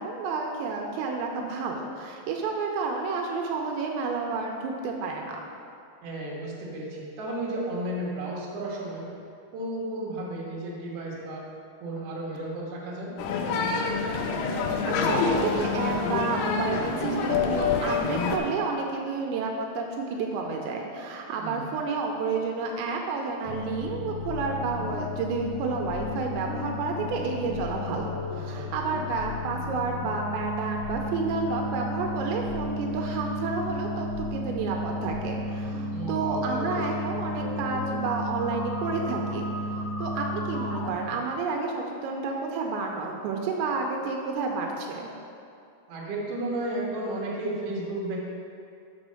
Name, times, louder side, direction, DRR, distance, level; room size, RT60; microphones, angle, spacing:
voice 1, 0.0-5.4 14.9-45.1, right 4 dB, 90° right, 1 dB, 2.9 m, -30 dB
voice 2, 6.0-9.1 9.5-11.4 11.8-13.2 21.4-21.7 28.3-28.7 35.9-37.0 45.9-48.2, right 1 dB, 60° right, -5 dB, 2.4 m, -33 dB
sound 1, 13.2-18.4, left 5 dB, 85° left, 2.3 m, -26 dB
sound 2, 23.4-40.9, left 1 dB, 65° left, 2.0 m, -33 dB
6.2 x 5.3 x 6.4 m, 2.5 s
omnidirectional pair, 5.1 m